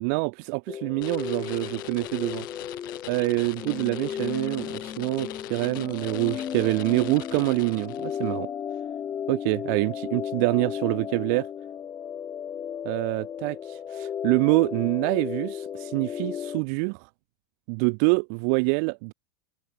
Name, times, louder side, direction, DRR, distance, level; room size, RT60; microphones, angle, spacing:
voice 1, 0.0-2.5 3.1-8.5 9.3-11.5 12.8-17.1 17.7-19.1, right 37 dB, 50° right, 0.9 m, -26 dB
sound 1, 0.7-16.6, left 8 dB, 25° left, 2.9 m, -35 dB
sound 2, 1.0-8.3, left 19 dB, 65° left, 2.6 m, -42 dB
hypercardioid pair, 125°, 12 cm